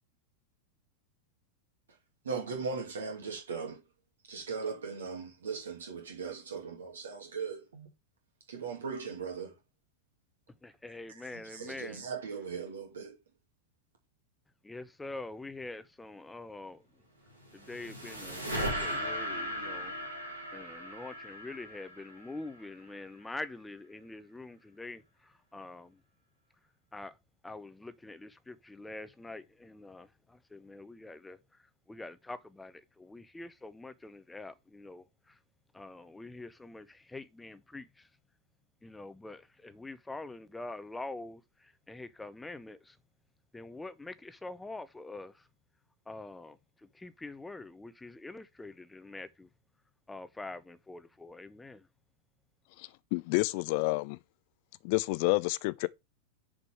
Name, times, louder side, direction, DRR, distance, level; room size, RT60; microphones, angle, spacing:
voice 1, 2.2-3.8 4.3-7.9 8.5-9.5 11.1-13.2, right 5 dB, 65° right, 2.4 m, -38 dB
voice 2, 10.6-12.0 14.6-16.8 17.5-19.9 20.5-25.0 25.5-26.0 26.9-27.1 27.4-31.4 31.9-35.0 35.7-37.9 38.8-41.4 41.9-42.9 43.5-45.3 46.1-46.6 46.9-49.5 50.1-51.8, left 2 dB, 10° left, 0.8 m, -45 dB
sound 1, 17.3-22.7, equal, 85° right, 3.0 m, -37 dB
voice 3, 52.8-54.2 54.8-55.9, left 25 dB, 45° left, 0.6 m, -29 dB
6.8 x 5.3 x 4.6 m
figure-of-eight pair, 90°, 0 cm